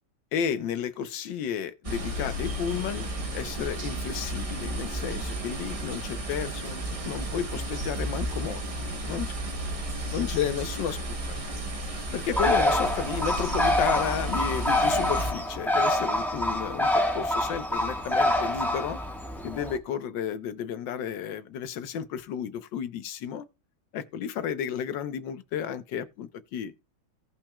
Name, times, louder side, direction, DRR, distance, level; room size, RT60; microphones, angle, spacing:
voice 1, 0.3-3.1 3.3-9.3 10.1-11.4 12.1-19.0 19.4-23.5 23.9-26.7, left 8 dB, 70° left, 1.4 m, -32 dB
sound 1, 1.8-15.3, right 1 dB, 35° right, 0.5 m, -33 dB
Bird, 12.4-19.8, left 1 dB, ahead, 1.1 m, -26 dB
16.5 x 5.8 x 2.3 m
omnidirectional pair, 2.2 m